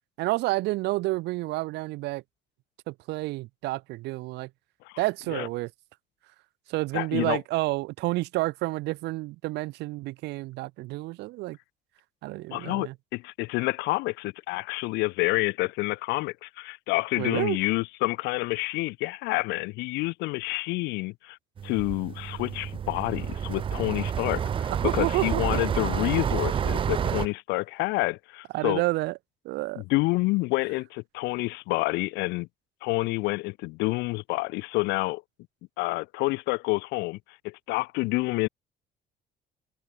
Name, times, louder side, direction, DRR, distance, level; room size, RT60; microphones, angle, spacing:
voice 1, 0.2-2.2 2.9-4.5 5.0-5.7 6.7-11.6 12.2-12.9 17.2-17.6 24.7-25.4 28.5-29.2 29.4-29.8, right 20 dB, 85° right, 1.2 m, -29 dB
voice 2, 6.9-7.4 12.5-21.4 21.6-28.8 29.8-32.5 32.8-35.2 35.8-37.2 37.4-38.5, left 23 dB, 90° left, 0.4 m, -28 dB
sound 1, 21.6-27.3, right 8 dB, 30° right, 0.4 m, -29 dB
open air
cardioid pair, 110°, 17 cm